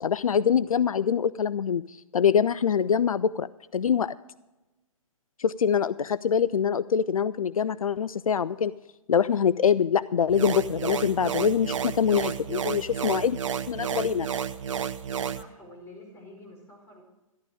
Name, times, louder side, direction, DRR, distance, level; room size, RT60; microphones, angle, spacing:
voice 1, 0.0-3.5 3.7-4.1 5.4-8.7 9.1-13.4 13.7-14.3, left 7 dB, 80° left, 17 dB, 0.4 m, -24 dB
sound 1, 10.3-15.4, right 8 dB, 60° right, 0.8 m, -31 dB
voice 2, 15.3-17.0, left 1 dB, 15° left, -1 dB, 5.1 m, -48 dB
14.0 x 11.5 x 4.9 m, 1.0 s
figure-of-eight pair, 130°, 18 cm